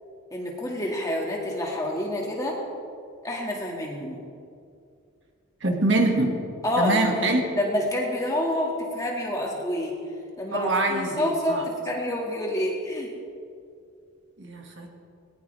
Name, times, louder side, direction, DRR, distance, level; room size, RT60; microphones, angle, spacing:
voice 1, 0.3-2.6 3.2-4.2 6.6-10.0 10.4-13.1, left 1 dB, 15° left, -2 dB, 2.2 m, -28 dB
voice 2, 5.6-6.4 6.8-7.5 10.5-11.7 14.4-14.9, right 2 dB, 55° right, 1 dB, 2.2 m, -24 dB
20.0 x 18.0 x 3.5 m, 2.4 s
head